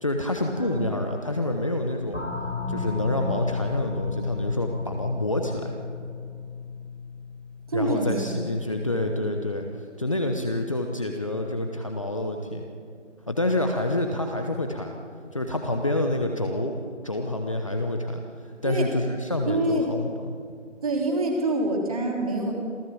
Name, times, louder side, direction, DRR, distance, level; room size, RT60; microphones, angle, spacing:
voice 1, 0.0-2.2 2.7-5.7 7.7-9.7 10.0-12.6 13.3-14.9 15.3-16.8 17.0-18.2 18.6-20.1, left 1 dB, 25° left, 3 dB, 1.0 m, -27 dB
sound 1, 2.1-8.5, left 5 dB, 80° left, 3.3 m, -33 dB
voice 2, 7.7-8.4 18.6-18.9 19.5-19.9 20.8-22.5, right 2 dB, 30° right, 1 dB, 3.2 m, -26 dB
27.5 x 16.0 x 7.1 m, 2.2 s
figure-of-eight pair, 170°, 37 cm